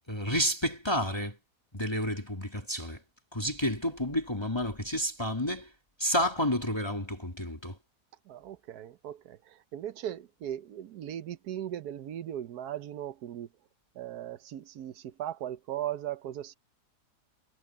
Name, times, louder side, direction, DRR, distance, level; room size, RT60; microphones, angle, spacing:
voice 1, 0.1-1.4 1.7-3.0 3.3-5.7 6.0-7.8, equal, 15° left, 2.7 m, -30 dB
voice 2, 8.3-9.4 9.7-13.5 14.0-16.5, right 11 dB, 75° right, 1.3 m, -38 dB
omnidirectional pair, 1.7 m